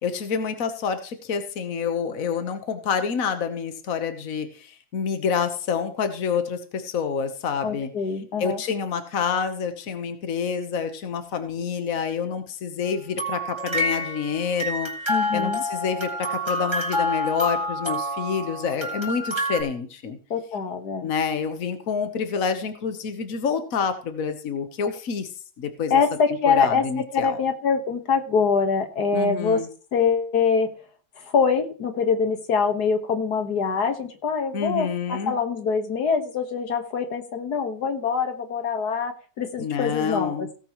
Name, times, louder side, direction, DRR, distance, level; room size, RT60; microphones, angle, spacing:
voice 1, 0.0-7.9 8.4-20.2 21.0-26.0 26.3-27.4 29.1-29.7 34.5-35.4 39.6-40.5, left 6 dB, 60° left, 8 dB, 1.6 m, -28 dB
voice 2, 7.6-8.6 15.1-15.6 20.3-21.1 25.9-29.6 29.9-30.7 31.3-40.5, left 5 dB, 85° left, 6 dB, 2.1 m, -24 dB
sound 1, 13.2-19.6, equal, 15° right, 3.3 m, -27 dB
17.0 x 9.2 x 3.1 m, 0.40 s
omnidirectional pair, 1.6 m